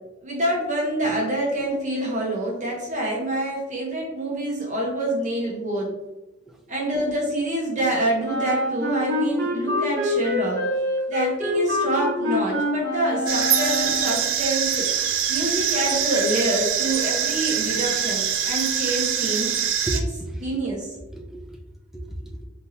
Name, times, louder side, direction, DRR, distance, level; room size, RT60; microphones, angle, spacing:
voice 1, 0.2-5.9 6.7-10.6 11.1-14.8 15.3-19.5 20.4-20.9, right 1 dB, 40° right, -3 dB, 1.2 m, -26 dB
Wind instrument woodwind instrument, 8.2-14.3, left 1 dB, 60° right, 1.1 m, -26 dB
sound 1, 13.3-20.0, right 8 dB, 90° right, 0.5 m, -24 dB
voice 2, 19.9-20.6 21.1-21.6 21.9-22.5, right 1 dB, ahead, -1 dB, 0.5 m, -32 dB
4.0 x 3.6 x 2.9 m, 1.0 s
head